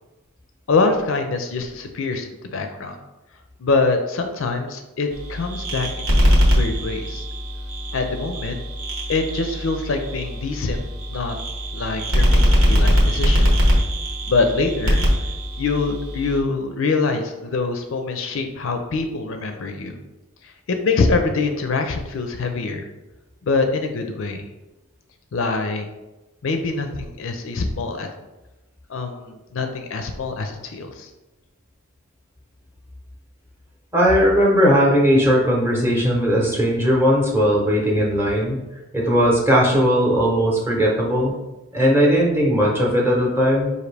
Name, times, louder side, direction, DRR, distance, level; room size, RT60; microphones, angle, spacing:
voice 1, 0.7-3.0 3.6-7.2 7.9-8.6 9.1-10.8 11.1-11.3 11.7-13.5 14.3-15.1 15.6-19.9 20.4-22.9 23.4-24.5 25.3-25.9 26.4-28.1 28.9-31.1, left 3 dB, 60° left, 5 dB, 0.4 m, -24 dB
sound 1, 5.1-16.4, equal, 70° right, 1.1 m, -21 dB
voice 2, 33.9-38.6 38.9-41.3 41.7-43.7, equal, 10° right, -3 dB, 0.8 m, -18 dB
5.0 x 2.6 x 3.3 m, 1.1 s
head